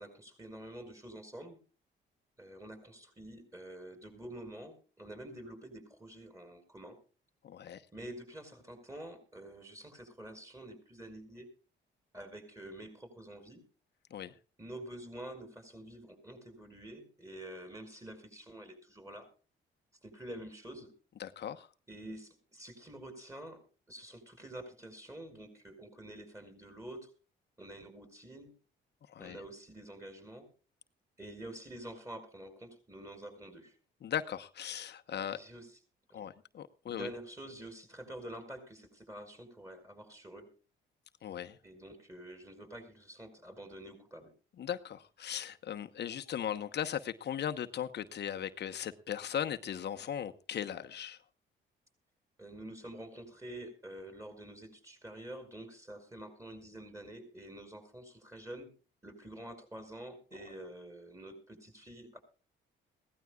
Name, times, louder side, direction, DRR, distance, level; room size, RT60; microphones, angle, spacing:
voice 1, 0.0-1.6 2.4-6.9 7.9-11.5 12.1-13.6 14.6-19.3 20.0-20.9 21.9-23.6 23.9-27.1 27.6-28.5 29.2-30.5 31.2-33.8 35.3-35.8 36.1-36.2 36.8-40.5 41.6-44.3 52.4-58.7 59.0-62.2, right 1 dB, 15° right, 7 dB, 6.6 m, -48 dB
voice 2, 7.4-7.8 14.1-14.3 21.2-21.7 29.1-29.4 34.0-35.4 36.1-37.1 41.2-41.6 44.6-51.2, left 9 dB, 60° left, 8 dB, 1.0 m, -38 dB
21.5 x 17.0 x 2.3 m, 0.37 s
cardioid pair, 90°, 20 cm